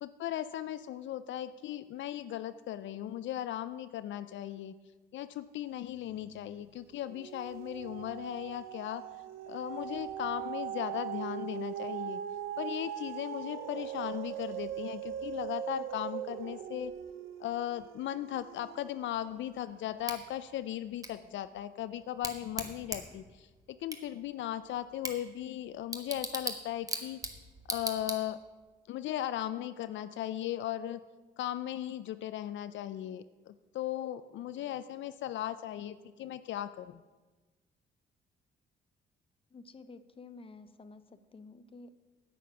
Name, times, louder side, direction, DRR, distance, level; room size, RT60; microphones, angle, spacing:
voice 1, 0.0-4.8 5.1-12.2 12.6-16.9 17.4-27.2 27.7-28.4 28.9-31.0 31.4-37.0, left 12 dB, 70° left, 13 dB, 0.4 m, -37 dB
sound 1, 6.0-6.6 6.9-19.4 19.9-20.0, right 11 dB, 90° right, 0.5 m, -40 dB
Bicycle / Tick, 20.1-28.6, right 2 dB, 15° right, 1.3 m, -41 dB
voice 2, 39.5-41.9, left 3 dB, 25° left, 11 dB, 0.7 m, -51 dB
9.2 x 8.5 x 6.0 m, 1.3 s
cardioid pair, 90°, 20 cm